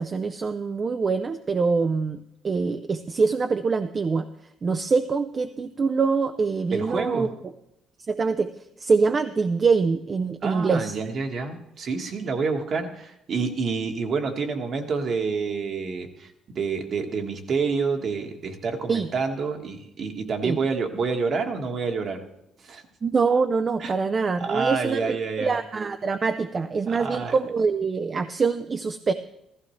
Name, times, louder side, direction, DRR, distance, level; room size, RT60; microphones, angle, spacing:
voice 1, 0.0-4.3 4.6-7.3 8.1-8.5 8.8-11.0 18.9-19.1 20.4-20.6 23.0-29.1, right 4 dB, 35° right, 9 dB, 0.5 m, -24 dB
voice 2, 6.7-7.3 10.4-22.2 22.6-22.8 23.8-23.9 24.4-25.6 26.9-27.3, right 4 dB, 50° right, 4 dB, 1.5 m, -28 dB
15.0 x 14.5 x 3.2 m, 0.81 s
cardioid pair, 105°, 0 cm